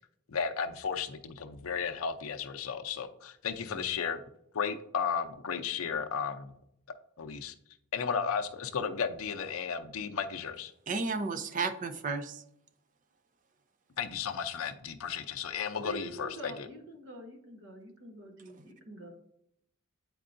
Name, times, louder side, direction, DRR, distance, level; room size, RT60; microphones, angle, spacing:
voice 1, 0.3-4.2 4.5-6.5 7.2-7.5 7.9-10.7 14.0-16.7, left 6 dB, 80° left, 8 dB, 0.5 m, -34 dB
voice 2, 10.9-12.4 18.6-18.7, right 4 dB, 40° right, 9 dB, 0.4 m, -33 dB
voice 3, 15.8-19.1, right 2 dB, 60° right, 2 dB, 1.2 m, -45 dB
8.4 x 4.6 x 2.6 m, 0.74 s
head